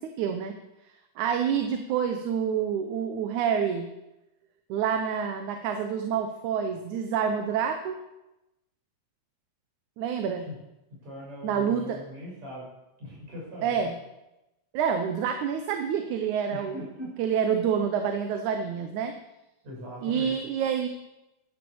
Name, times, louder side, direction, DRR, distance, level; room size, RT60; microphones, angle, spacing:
voice 1, 0.2-0.5 1.2-3.9 4.7-8.0 10.0-10.5 11.4-12.0 13.6-14.0 14.7-16.9 17.2-19.1 20.0-20.9, right 7 dB, 80° right, 6 dB, 2.3 m, -27 dB
voice 2, 11.0-12.7 13.0-13.9 16.5-17.1 19.6-20.3, left 1 dB, 65° right, -4 dB, 7.6 m, -40 dB
11.0 x 11.0 x 7.1 m, 0.95 s
omnidirectional pair, 3.5 m